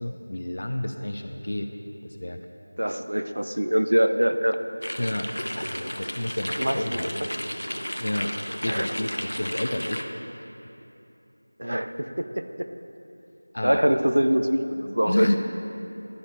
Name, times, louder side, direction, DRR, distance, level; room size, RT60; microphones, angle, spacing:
voice 1, 0.0-1.7 2.0-2.4 5.0-7.3 8.0-8.3 8.6-10.0 13.5-13.8 15.0-15.4, left 1 dB, 50° left, 4 dB, 0.4 m, -30 dB
voice 2, 2.8-4.6 6.6-7.0 8.7-8.9 11.6-12.4 13.6-15.4, equal, 70° right, 8 dB, 0.5 m, -24 dB
sound 1, 4.8-10.0, equal, 90° left, 0.7 m, -33 dB
12.0 x 4.0 x 4.4 m, 2.8 s
figure-of-eight pair, 175°, 0 cm